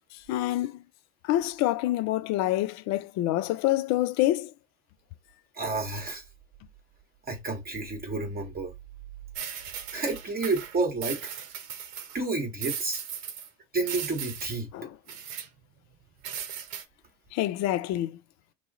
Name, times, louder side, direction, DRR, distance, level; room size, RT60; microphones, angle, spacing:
voice 1, 0.3-0.8 1.2-4.5 14.7-14.9 17.3-18.2, left 14 dB, 45° left, 0.4 m, -27 dB
voice 2, 5.6-6.2 7.3-8.7 9.9-11.2 12.1-13.0 13.7-14.7, right 3 dB, 25° right, 1.1 m, -30 dB
sound 1, 9.4-12.2 12.6-13.5 13.8-14.6 15.1-15.5 16.2-16.8, right 9 dB, 70° right, 0.8 m, -37 dB
3.1 x 2.4 x 3.9 m
hypercardioid pair, 70°, 40 cm